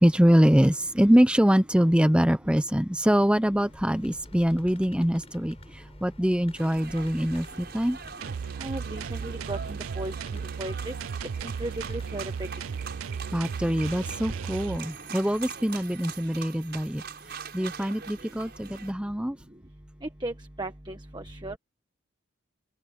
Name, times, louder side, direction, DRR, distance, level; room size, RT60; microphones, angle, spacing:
voice 1, 0.0-8.0 13.3-17.0 17.5-19.4, equal, 5° right, 0.8 m, -23 dB
sound 1, 3.4-16.3, left 1 dB, 30° left, 7.0 m, -53 dB
sound 2, 6.6-18.9, right 6 dB, 50° right, 6.9 m, -43 dB
sound 3, 8.2-14.8, right 6 dB, 75° right, 0.4 m, -35 dB
voice 2, 8.6-10.1 10.6-10.9 11.4-12.2 20.2-21.6, right 1 dB, 20° right, 1.4 m, -35 dB
open air
head